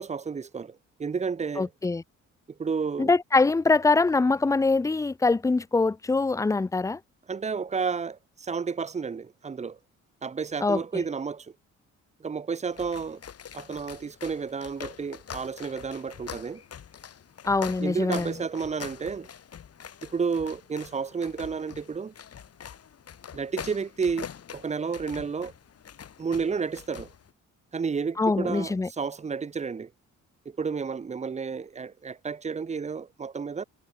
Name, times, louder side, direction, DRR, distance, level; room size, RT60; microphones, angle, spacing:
voice 1, 0.0-1.7 2.6-3.1 7.3-9.8 10.2-11.5 12.2-13.2 13.5-16.6 17.8-19.3 20.0-22.1 23.3-25.5 26.2-27.1 27.7-29.9 30.5-33.6, right 5 dB, 25° right, 0.7 m, -31 dB
voice 2, 1.6-2.0 3.0-7.0 10.6-10.8 17.5-18.3 28.2-28.9, left 3 dB, 10° left, 0.4 m, -23 dB
sound 1, 12.6-27.3, left 8 dB, 55° left, 3.2 m, -44 dB
cardioid pair, 90°, 30 cm